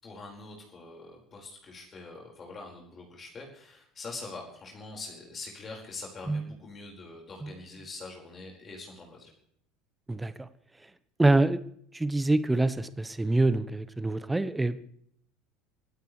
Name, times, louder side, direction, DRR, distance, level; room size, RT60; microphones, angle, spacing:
voice 1, 0.0-9.3, left 3 dB, 30° left, 0 dB, 4.9 m, -44 dB
voice 2, 10.1-10.5 11.2-11.6 11.9-14.9, right 2 dB, 10° right, 14 dB, 1.0 m, -26 dB
24.5 x 16.5 x 3.3 m, 0.66 s
figure-of-eight pair, 70°, 0 cm